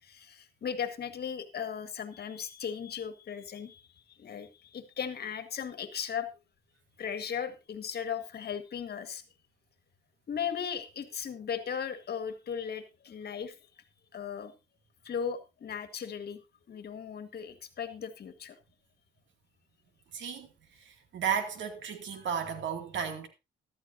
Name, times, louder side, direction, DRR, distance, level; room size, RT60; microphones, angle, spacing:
voice 1, 0.0-3.9 4.2-6.3 7.0-9.2 10.3-13.6 14.1-14.5 15.0-16.4 16.7-18.6, left 7 dB, 55° left, 1.7 m, -37 dB
voice 2, 20.1-20.5 21.1-23.3, right 7 dB, 70° right, 2.4 m, -33 dB
14.5 x 12.5 x 2.7 m
cardioid pair, 90°, 20 cm